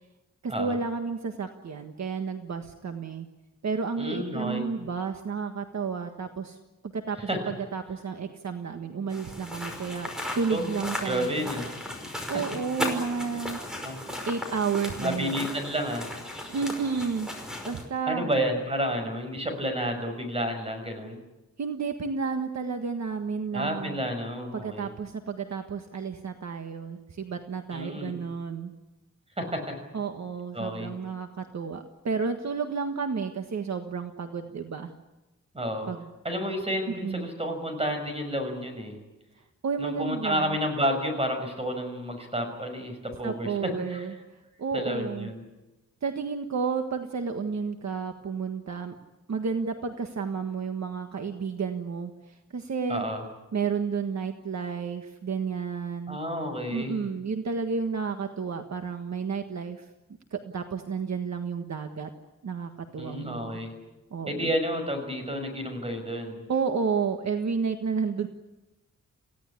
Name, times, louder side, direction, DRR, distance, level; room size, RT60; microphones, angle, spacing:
voice 1, 0.4-3.3 3.6-6.6 6.9-7.2 7.5-11.5 12.3-13.6 14.2-15.5 16.5-17.3 17.6-18.3 21.6-24.0 24.5-28.7 29.9-34.9 35.9-36.1 37.0-37.3 39.6-40.6 43.2-44.1 44.6-45.3 46.0-49.0 49.3-53.0 53.5-56.2 56.7-59.9 60.3-62.1 62.4-63.6 64.1-64.6 66.5-68.3, right 5 dB, 60° right, 5 dB, 1.6 m, -31 dB
voice 2, 4.0-4.7 7.3-7.4 10.5-10.7 11.0-11.7 13.8-14.0 15.0-16.1 18.1-21.2 23.5-24.9 27.7-28.2 29.3-29.8 30.5-30.9 35.5-35.9 36.2-39.0 39.8-44.0 44.7-45.4 52.9-53.2 56.1-57.0 63.0-63.7 64.3-66.4, equal, 20° right, 5 dB, 6.2 m, -30 dB
sound 1, 9.1-17.8, left 1 dB, ahead, 5.3 m, -36 dB
28.5 x 16.5 x 9.9 m, 1.0 s
wide cardioid pair, 165°, 31 cm